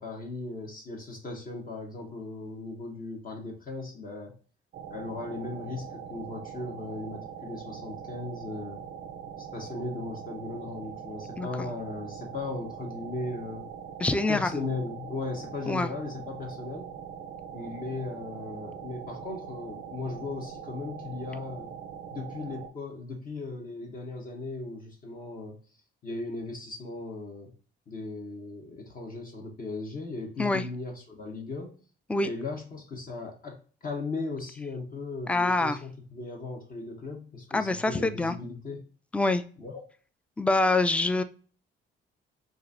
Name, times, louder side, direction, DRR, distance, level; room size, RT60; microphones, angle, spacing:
voice 1, 0.0-4.3 4.9-8.8 9.5-13.7 14.3-16.9 17.5-21.7 22.1-25.6 26.0-27.5 27.9-31.8 32.2-38.8 39.6-39.8, left 3 dB, 45° left, 1 dB, 0.9 m, -37 dB
sound 1, 4.7-22.7, right 8 dB, 60° right, 0.5 m, -42 dB
voice 2, 14.0-14.5 15.7-15.9 30.4-30.6 32.1-32.3 35.3-35.8 37.5-38.4 39.1-39.4 40.4-41.2, left 2 dB, 5° left, 11 dB, 0.3 m, -25 dB
4.7 x 2.5 x 2.6 m, 0.40 s
cardioid pair, 90°, 20 cm